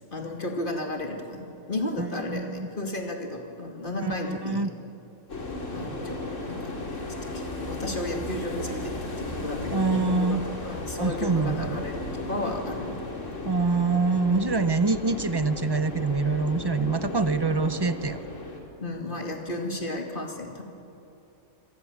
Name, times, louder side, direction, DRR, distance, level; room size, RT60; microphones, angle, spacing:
voice 1, 0.1-4.7 5.7-6.2 6.5-13.0 18.8-20.6, left 1 dB, 40° left, 2 dB, 2.6 m, -33 dB
voice 2, 2.0-2.7 4.0-4.7 9.7-10.4 11.0-11.8 13.4-18.2, right 4 dB, 40° right, 11 dB, 0.3 m, -25 dB
sound 1, 5.3-18.6, left 2 dB, 60° left, 3.1 m, -35 dB
26.0 x 18.5 x 7.3 m, 2.8 s
omnidirectional pair, 1.4 m